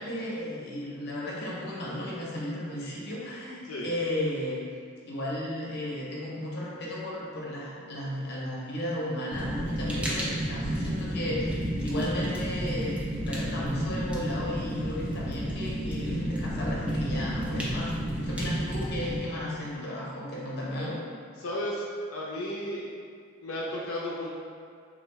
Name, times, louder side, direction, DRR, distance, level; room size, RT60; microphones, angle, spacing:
voice 1, 0.0-4.6 5.1-17.9 18.2-21.0, left 1 dB, 50° left, -5 dB, 0.7 m, -34 dB
Fire, 9.3-19.2, equal, 5° right, 0.4 m, -31 dB
voice 2, 21.4-21.8 22.1-22.8 23.4-24.3, left 1 dB, 85° left, -5 dB, 0.5 m, -33 dB
3.4 x 2.4 x 3.0 m, 2.2 s
head